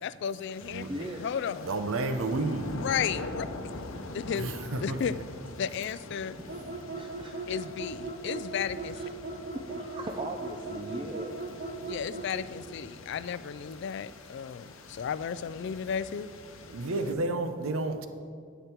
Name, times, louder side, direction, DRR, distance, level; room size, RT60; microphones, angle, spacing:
voice 1, 0.0-1.7 2.7-3.5 4.1-4.5 4.8-5.2 5.6-6.4 7.5-9.0 11.8-16.3, left 7 dB, 55° left, 16 dB, 0.3 m, -34 dB
sound 1, 0.5-17.1, left 2 dB, 75° left, 0.8 m, -44 dB
voice 2, 0.9-1.3 1.8-1.9 6.5-6.6 6.9-7.6 8.8-9.1 9.4-11.6, right 1 dB, 25° right, 3 dB, 0.4 m, -40 dB
voice 3, 1.6-2.8 4.4-5.0 16.7-18.1, right 2 dB, 80° right, 8 dB, 0.7 m, -31 dB
sound 2, 6.5-12.3, right 3 dB, 45° right, 0.9 m, -38 dB
10.0 x 8.1 x 4.5 m, 2.2 s
head